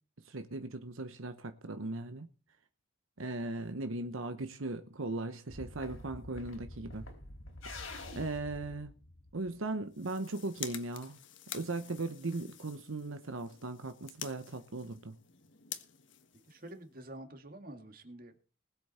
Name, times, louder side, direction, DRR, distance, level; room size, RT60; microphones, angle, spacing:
voice 1, 0.2-2.3 3.2-7.1 7.6-8.9 9.3-11.2 11.5-15.2, right 2 dB, 80° right, 1.0 m, -38 dB
sound 1, 5.5-9.7, left 2 dB, 85° left, 4.3 m, -47 dB
sound 2, 9.8-17.1, left 10 dB, 65° left, 1.4 m, -48 dB
voice 2, 16.5-18.4, right 1 dB, 45° right, 2.0 m, -48 dB
20.5 x 8.2 x 4.4 m
head